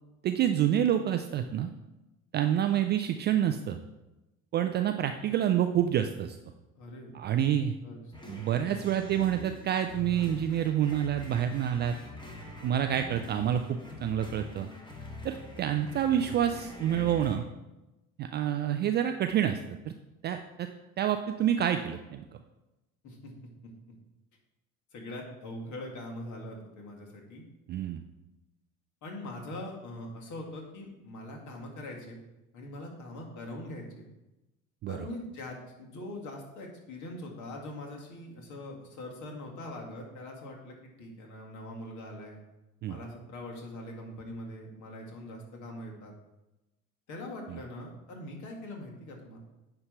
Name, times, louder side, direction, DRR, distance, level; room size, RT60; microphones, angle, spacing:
voice 1, 0.2-1.7 2.3-3.8 4.5-6.4 7.1-7.7 8.3-11.9 12.6-14.7 15.2-17.5 18.2-19.6 19.9-20.0 20.2-20.7 21.0-22.2 27.7-28.0 34.8-35.1 42.8-43.0, right 10 dB, 25° right, 7 dB, 0.3 m, -28 dB
voice 2, 6.8-8.0 23.0-23.3 24.9-27.4 29.0-32.2 32.5-34.1 34.9-42.4 42.9-46.1 47.1-49.4, left 1 dB, 45° left, 0 dB, 2.0 m, -42 dB
sound 1, 8.1-17.4, left 2 dB, 10° left, 1.6 m, -44 dB
9.5 x 3.3 x 5.6 m, 1.0 s
figure-of-eight pair, 65°, 41 cm